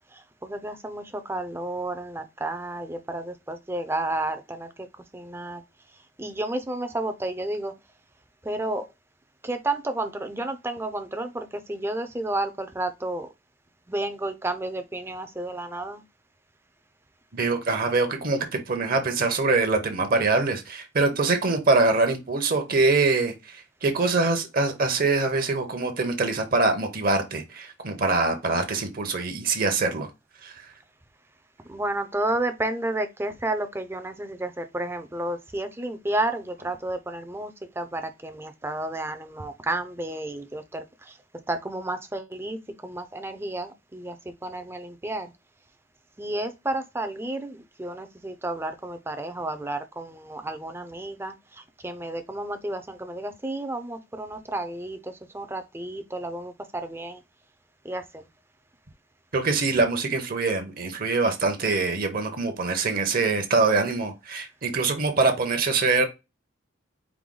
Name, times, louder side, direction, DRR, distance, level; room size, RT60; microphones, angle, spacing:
voice 1, 0.1-4.9 5.1-5.6 6.2-7.7 8.4-8.9 9.4-13.3 13.9-16.0 31.7-41.2 41.5-45.3 46.2-57.2 57.8-58.3, right 2 dB, 10° right, 0.5 m, -31 dB
voice 2, 17.3-30.1 30.4-30.7 59.3-66.1, right 3 dB, 45° right, 0.8 m, -24 dB
4.8 x 2.2 x 3.7 m
head